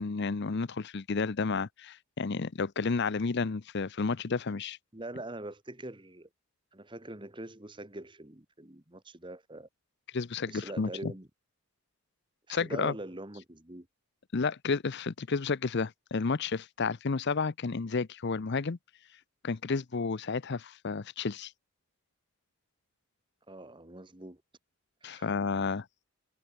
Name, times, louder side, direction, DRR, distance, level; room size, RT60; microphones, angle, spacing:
voice 1, 0.0-4.8 10.1-11.1 12.5-12.9 14.3-18.8 19.4-21.5 25.0-25.9, left 4 dB, 50° left, 0.6 m, -31 dB
voice 2, 4.9-6.3 6.7-9.7 10.5-11.3 12.5-13.9 23.5-24.4 25.0-25.4, right 1 dB, 20° right, 1.5 m, -43 dB
head